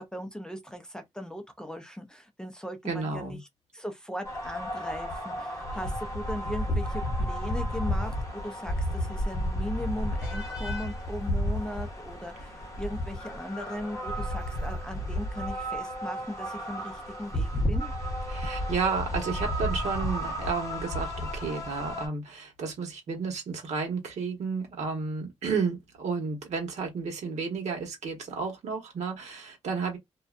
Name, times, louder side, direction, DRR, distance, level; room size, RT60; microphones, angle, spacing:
voice 1, 0.0-3.4 3.7-17.9, equal, 5° left, 0.4 m, -38 dB
voice 2, 2.8-3.4 18.3-30.0, right 5 dB, 80° right, 1.2 m, -32 dB
sound 1, 4.2-22.1, equal, 30° left, 1.0 m, -32 dB
2.5 x 2.1 x 2.4 m
wide cardioid pair, 145°, 12 cm